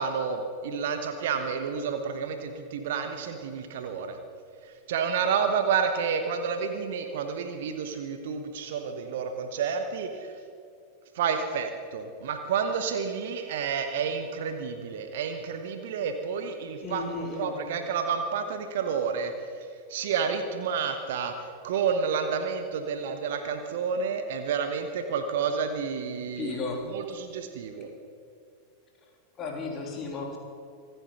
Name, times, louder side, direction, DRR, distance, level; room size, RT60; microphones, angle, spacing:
voice 1, 0.0-4.2 4.6-10.4 11.1-19.3 19.9-27.9, right 6 dB, 55° right, 7 dB, 1.2 m, -30 dB
voice 2, 16.8-17.5 26.4-26.8 29.4-30.4, left 4 dB, 30° left, 1 dB, 3.2 m, -34 dB
25.5 x 9.2 x 6.1 m, 2.4 s
figure-of-eight pair, 90°, 0 cm